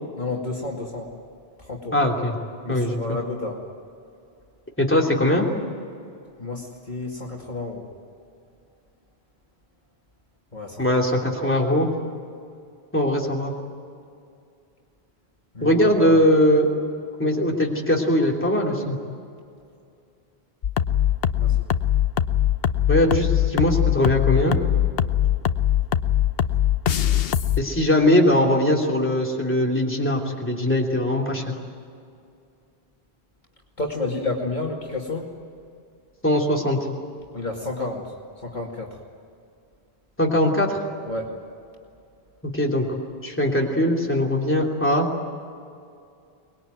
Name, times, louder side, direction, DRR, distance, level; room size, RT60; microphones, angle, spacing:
voice 1, 0.2-1.1 1.6-2.1 2.6-3.6 6.4-7.9 10.5-10.8 15.5-16.2 21.4-21.6 33.8-35.3 37.3-39.0 41.0-41.3, left 2 dB, 45° left, -1 dB, 2.6 m, -31 dB
voice 2, 1.9-2.3 2.7-3.0 4.8-5.5 10.8-11.9 12.9-13.5 15.6-16.7 17.2-19.0 22.9-24.6 27.6-31.5 36.2-36.8 40.2-40.8 42.4-42.9 43.2-45.1, left 1 dB, 10° left, -1 dB, 3.1 m, -20 dB
sound 1, 20.6-27.6, left 11 dB, 65° left, 1.0 m, -22 dB
24.0 x 20.5 x 9.4 m, 2.4 s
omnidirectional pair, 1.1 m